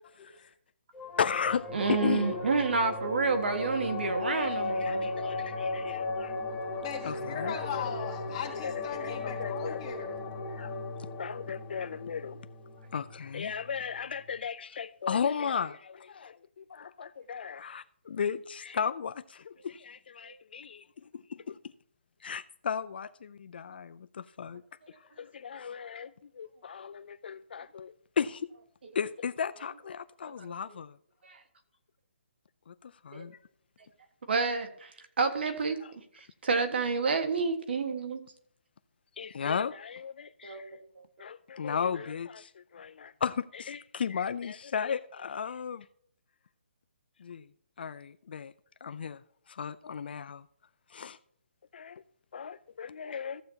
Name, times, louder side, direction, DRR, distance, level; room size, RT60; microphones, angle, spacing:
voice 1, 0.2-0.5 6.8-10.3, left 7 dB, 25° left, 2.3 m, -39 dB
sound 1, 0.9-13.8, left 3 dB, 10° left, 1.2 m, -36 dB
voice 2, 1.2-2.4 4.3-6.4 7.0-7.9 8.6-9.8 10.5-10.7 11.2-12.4 12.9-21.7 22.2-24.6 24.9-28.5 28.9-31.0 32.7-33.4 35.8-35.9 39.2-40.8 41.2-45.9 47.2-47.5 47.8-48.5 48.8-50.4 50.9-51.2 51.7-52.0 52.3-53.4, left 7 dB, 55° left, 0.4 m, -35 dB
voice 3, 1.7-5.1 31.2-31.3 33.1-33.2 34.3-35.8 36.1-38.2 40.4-40.6 41.0-41.1, right 4 dB, 60° right, 1.5 m, -29 dB
14.5 x 8.0 x 2.8 m
hypercardioid pair, 165°, 6 cm